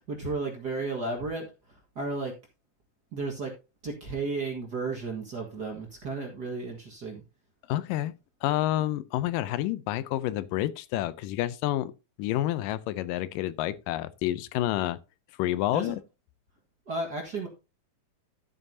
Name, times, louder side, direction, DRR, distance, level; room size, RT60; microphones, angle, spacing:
voice 1, 0.1-1.5 2.0-2.3 3.1-3.5 3.8-7.2 15.7-16.0 16.9-17.5, right 3 dB, 40° right, 1.7 m, -33 dB
voice 2, 7.7-8.1 8.4-11.9 12.2-15.0 15.4-16.0, left 14 dB, 85° left, 2.3 m, -29 dB
13.0 x 7.6 x 2.7 m
omnidirectional pair, 3.9 m